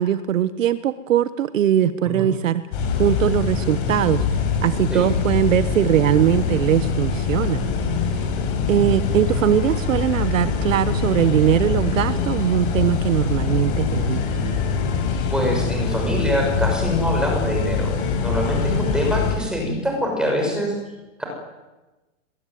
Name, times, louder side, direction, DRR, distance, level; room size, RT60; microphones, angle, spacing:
voice 1, 0.0-2.6 3.0-4.2 4.6-7.6 8.2-8.3 8.7-14.6, right 11 dB, 75° right, 13 dB, 1.3 m, -21 dB
sound 1, 2.7-19.4, left 5 dB, 40° left, 7.4 m, -24 dB
voice 2, 15.3-17.9 18.2-20.7 21.2-21.3, equal, ahead, 1 dB, 6.4 m, -24 dB
22.5 x 22.0 x 9.4 m, 1.1 s
supercardioid pair, 170°, 39 cm